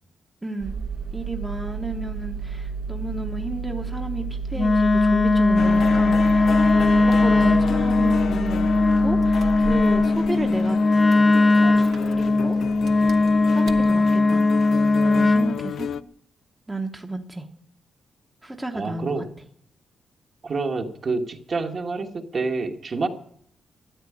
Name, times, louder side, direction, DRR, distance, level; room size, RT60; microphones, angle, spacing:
voice 1, 0.4-0.8 1.1-8.7 9.0-10.8 11.8-12.6 13.5-14.5 15.0-15.9 16.7-17.5 18.4-19.1, right 2 dB, 10° right, 3 dB, 1.0 m, -32 dB
Engine starting, 0.6-13.9, right 4 dB, 60° right, 1.1 m, -32 dB
Wind instrument woodwind instrument, 4.6-15.6, left 2 dB, 25° left, 0.7 m, -19 dB
sound 1, 5.6-16.0, left 8 dB, 60° left, 0.5 m, -31 dB
voice 2, 18.7-19.2 20.4-23.1, right 3 dB, 35° right, 4 dB, 1.3 m, -27 dB
13.5 x 9.6 x 8.6 m, 0.64 s
wide cardioid pair, 180°, 0 cm